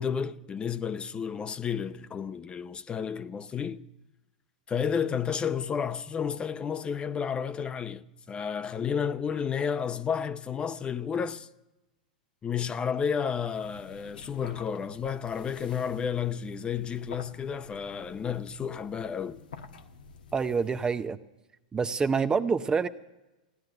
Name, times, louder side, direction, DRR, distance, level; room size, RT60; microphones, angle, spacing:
voice 1, 0.0-3.8 4.7-11.5 12.4-19.4, left 7 dB, 20° left, 0.7 m, -31 dB
sound 1, 13.4-21.1, left 5 dB, 85° left, 1.3 m, -49 dB
voice 2, 20.3-21.2 21.7-22.9, right 5 dB, 15° right, 0.6 m, -26 dB
16.5 x 10.5 x 7.8 m
hypercardioid pair, 110°, 5 cm